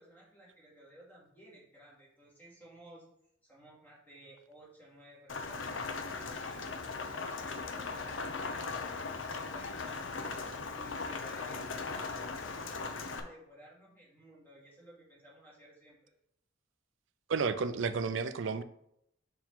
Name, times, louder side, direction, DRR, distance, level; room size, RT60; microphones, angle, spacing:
voice 1, 0.0-3.1 3.4-5.9 6.3-6.8 7.1-10.3 10.7-16.1, right 1 dB, 10° left, 2.0 m, -56 dB
Rain, 5.3-13.2, left 4 dB, 80° left, 0.7 m, -38 dB
voice 2, 17.3-18.6, right 5 dB, 75° right, 0.4 m, -31 dB
5.6 x 4.6 x 3.8 m
head